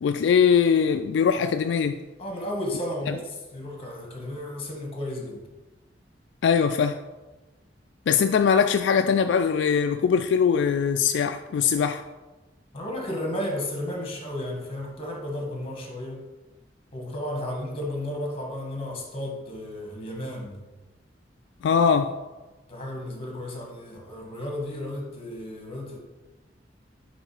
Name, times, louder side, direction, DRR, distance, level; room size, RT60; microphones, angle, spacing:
voice 1, 0.0-2.0 3.1-3.2 6.4-7.0 8.1-12.0 21.6-22.2, left 6 dB, 75° left, 0.3 m, -21 dB
voice 2, 2.2-5.4 12.7-16.3 16.9-20.6 22.7-26.0, left 1 dB, 30° left, 1.5 m, -33 dB
8.9 x 3.3 x 4.8 m
head